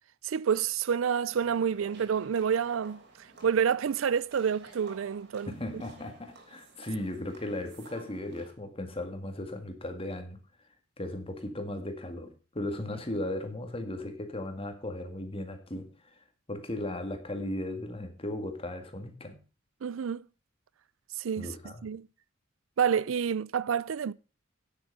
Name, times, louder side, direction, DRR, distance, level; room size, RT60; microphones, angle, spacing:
voice 1, 0.2-3.0 3.4-5.5 19.8-20.2 21.2-22.1 22.8-24.1, right 7 dB, 85° right, 0.4 m, -28 dB
sound 1, 1.3-8.5, right 3 dB, 60° right, 3.6 m, -54 dB
voice 2, 5.5-10.4 11.0-19.4 21.4-21.9, left 1 dB, 30° left, 2.0 m, -37 dB
9.7 x 8.1 x 5.4 m
head